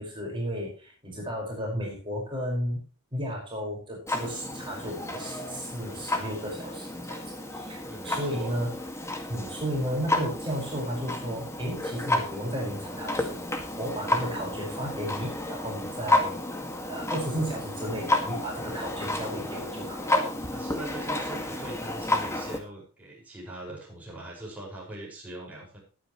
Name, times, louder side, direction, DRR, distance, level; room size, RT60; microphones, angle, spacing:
voice 1, 0.0-2.8 3.1-7.2 7.5-7.8 8.0-8.7 9.3-16.4 16.9-20.2, equal, 25° right, -3 dB, 5.2 m, -33 dB
Clock, 4.1-22.6, left 2 dB, 15° left, 1.9 m, -31 dB
voice 2, 7.8-8.6 20.5-25.8, right 1 dB, 5° right, -5 dB, 5.5 m, -41 dB
19.5 x 9.0 x 3.1 m, 0.35 s
head